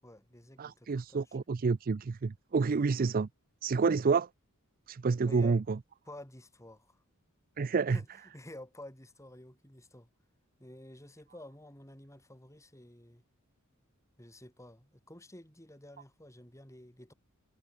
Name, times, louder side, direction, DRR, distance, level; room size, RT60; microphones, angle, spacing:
voice 1, 0.0-1.4 5.2-5.6 6.1-7.0 7.9-10.1 10.6-13.2 14.2-17.1, left 1 dB, 15° left, 6.3 m, -51 dB
voice 2, 0.6-3.3 3.6-4.3 4.9-5.8 7.6-8.0, right 4 dB, 40° right, 0.4 m, -29 dB
head